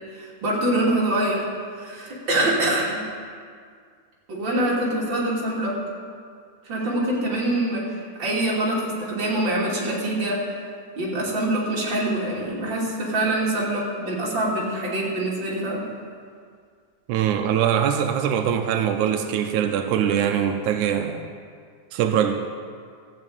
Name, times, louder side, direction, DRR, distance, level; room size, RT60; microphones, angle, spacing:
voice 1, 0.1-1.5 1.8-3.0 4.3-5.8 6.7-7.8 8.2-10.4 11.0-15.8, right 1 dB, 40° right, -5 dB, 3.3 m, -24 dB
voice 2, 17.1-21.3 21.9-22.4, right 9 dB, 90° right, 6 dB, 2.1 m, -22 dB
14.0 x 6.5 x 8.7 m, 2.1 s
omnidirectional pair, 3.4 m